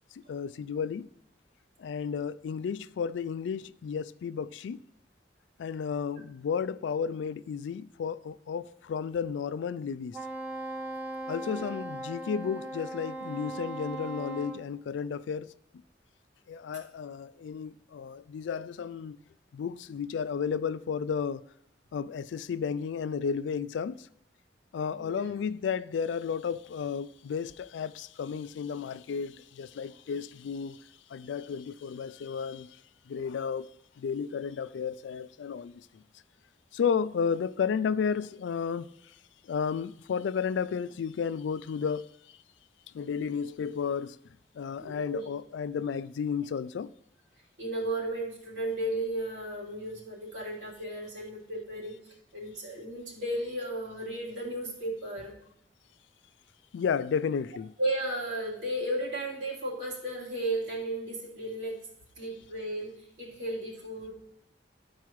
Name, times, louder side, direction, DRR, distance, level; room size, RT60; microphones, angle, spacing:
voice 1, 0.3-1.1 1.8-4.8 5.6-10.2 11.3-15.5 16.5-19.2 19.5-21.4 21.9-24.0 24.7-30.8 31.1-32.7 33.1-33.7 34.0-35.7 36.7-38.9 39.5-42.1 42.9-44.2 44.6-46.9 56.7-57.7, left 6 dB, 85° left, 0.3 m, -32 dB
Wind instrument woodwind instrument, 10.1-14.6, right 2 dB, 10° right, 0.8 m, -38 dB
voice 2, 25.0-25.3 44.8-45.3 47.6-52.0 52.3-55.3 57.8-61.8 62.1-64.1, right 1 dB, 85° right, 3.2 m, -34 dB
13.0 x 4.7 x 3.1 m
head